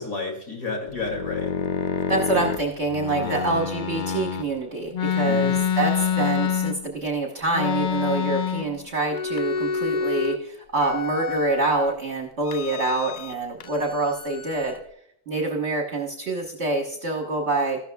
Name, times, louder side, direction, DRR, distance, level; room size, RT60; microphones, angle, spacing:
voice 1, 0.0-1.7 3.1-3.6 5.3-5.6, left 4 dB, 65° left, 1 dB, 3.0 m, -32 dB
sound 1, 0.9-4.5 4.9-7.0 7.5-8.8 9.1-10.4 10.7-11.9 12.5-13.3 13.6-14.8, left 7 dB, 90° left, 0.4 m, -27 dB
voice 2, 2.1-14.7 15.3-17.8, right 3 dB, 50° right, 0 dB, 1.5 m, -26 dB
14.0 x 12.5 x 2.3 m, 0.72 s
omnidirectional pair, 1.6 m